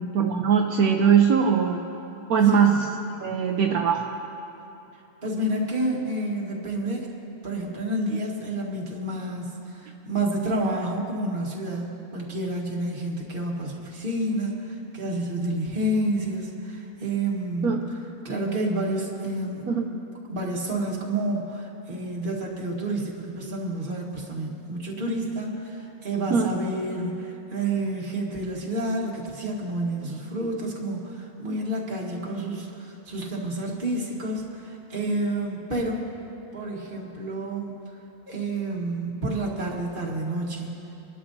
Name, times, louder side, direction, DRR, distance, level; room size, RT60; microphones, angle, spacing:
voice 1, 0.0-1.8 2.3-2.7 3.2-4.0 17.6-17.8 19.7-19.9 26.3-26.5, right 7 dB, 75° right, 2 dB, 1.1 m, -20 dB
voice 2, 2.4-2.8 5.2-7.1 7.4-17.8 18.2-19.7 20.3-36.0 36.5-37.7 38.3-40.9, right 1 dB, 35° right, -2 dB, 1.8 m, -29 dB
30.0 x 12.0 x 2.7 m, 3.0 s
omnidirectional pair, 1.6 m